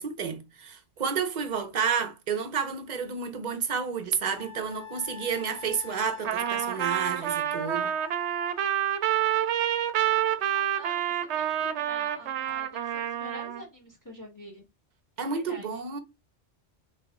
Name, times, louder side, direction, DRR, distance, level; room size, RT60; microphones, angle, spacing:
voice 1, 0.0-7.9 15.2-16.0, right 6 dB, 45° right, 0.7 m, -30 dB
Wind instrument woodwind instrument, 4.4-8.7, left 8 dB, 55° left, 1.0 m, -45 dB
voice 2, 5.8-6.2 10.4-14.6 15.2-15.7, right 1 dB, 15° left, 1.2 m, -46 dB
Trumpet, 6.2-13.6, right 11 dB, 80° right, 0.9 m, -28 dB
3.1 x 3.0 x 3.5 m
omnidirectional pair, 1.2 m